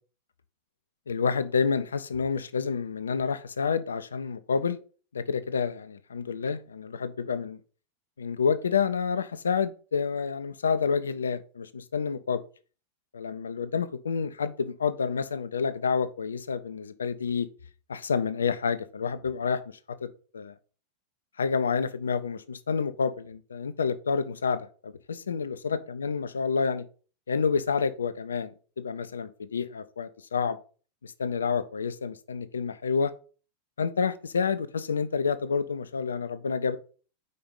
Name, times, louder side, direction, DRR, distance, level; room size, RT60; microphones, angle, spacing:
voice 1, 1.1-4.8 5.1-7.6 8.2-12.4 13.1-17.5 17.9-19.6 19.9-20.1 20.3-20.5 21.4-26.8 27.3-30.6 31.0-33.1 33.8-36.8, left 5 dB, 70° left, 12 dB, 0.4 m, -29 dB
5.2 x 4.3 x 5.3 m, 0.38 s
figure-of-eight pair, 90°, 0 cm